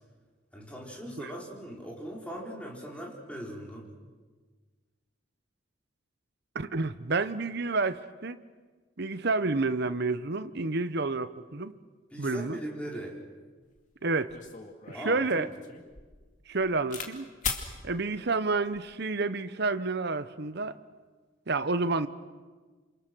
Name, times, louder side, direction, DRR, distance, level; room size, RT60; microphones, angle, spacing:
voice 1, 0.5-3.9 12.1-13.2 14.9-15.5, equal, 5° left, -3 dB, 4.6 m, -40 dB
voice 2, 6.5-8.4 9.0-11.8 12.2-12.6 14.0-14.4 14.9-15.5 16.5-17.3 17.8-20.8 21.5-22.1, right 3 dB, 55° right, 12 dB, 0.9 m, -29 dB
sound 1, 13.8-13.9 14.3-17.1 17.4-17.7 18.5-18.9, left 5 dB, 40° left, 2.4 m, -38 dB
28.0 x 27.5 x 6.3 m, 1.4 s
head